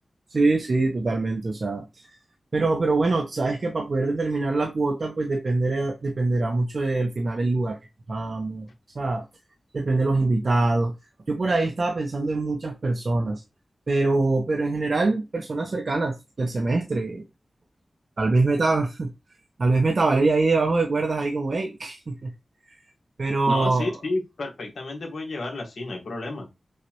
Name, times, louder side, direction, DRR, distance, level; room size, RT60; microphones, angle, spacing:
voice 1, 0.3-1.8 2.5-7.8 8.1-8.7 8.9-9.2 9.7-10.9 11.3-13.4 13.9-17.3 18.2-19.1 19.6-22.3 23.2-23.9, right 3 dB, 65° right, 0.9 m, -24 dB
voice 2, 23.5-26.5, left 2 dB, 75° left, 1.6 m, -31 dB
6.5 x 2.5 x 3.0 m
cardioid pair, 50°, 0 cm